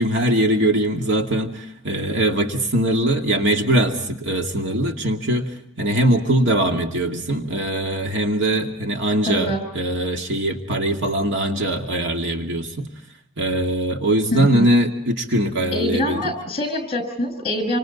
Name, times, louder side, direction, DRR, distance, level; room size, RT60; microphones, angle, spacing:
voice 1, 0.0-5.5 5.8-12.9 13.4-16.3, right 1 dB, 60° right, 3 dB, 2.3 m, -21 dB
voice 2, 9.3-9.6 14.3-14.7 15.7-17.8, equal, 30° left, 8 dB, 6.1 m, -24 dB
28.0 x 26.0 x 4.2 m, 0.77 s
head